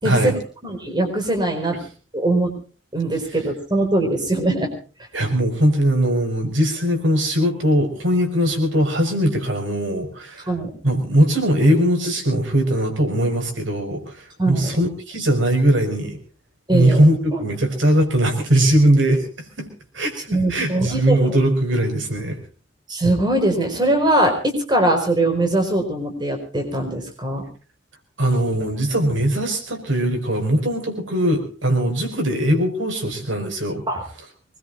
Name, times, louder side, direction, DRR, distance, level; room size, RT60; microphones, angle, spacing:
voice 1, 0.0-0.3 0.6-1.8 2.1-2.5 2.9-4.7 10.5-10.7 14.4-14.8 16.7-17.0 17.3-17.4 20.3-21.3 22.9-27.4 33.9-34.0, right 1 dB, 25° right, 3 dB, 4.8 m, -21 dB
voice 2, 5.1-10.5 10.8-16.2 16.7-19.3 19.6-19.7 19.9-22.4 28.2-33.8, right 1 dB, 90° right, 5 dB, 5.5 m, -20 dB
25.0 x 21.0 x 2.5 m, 0.38 s
head